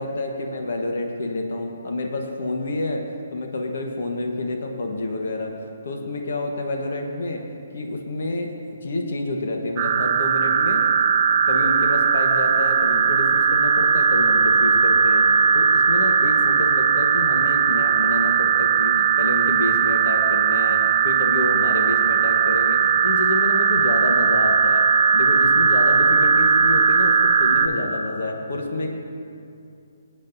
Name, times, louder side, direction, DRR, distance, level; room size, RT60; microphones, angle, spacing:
voice 1, 0.0-5.5 5.8-7.4 7.7-10.8 11.3-28.9, left 2 dB, 60° left, 2 dB, 1.2 m, -28 dB
sound 1, 9.8-27.7, right 6 dB, 30° right, 0.6 m, -18 dB
19.5 x 8.8 x 2.7 m, 2.5 s
figure-of-eight pair, 140°, 0 cm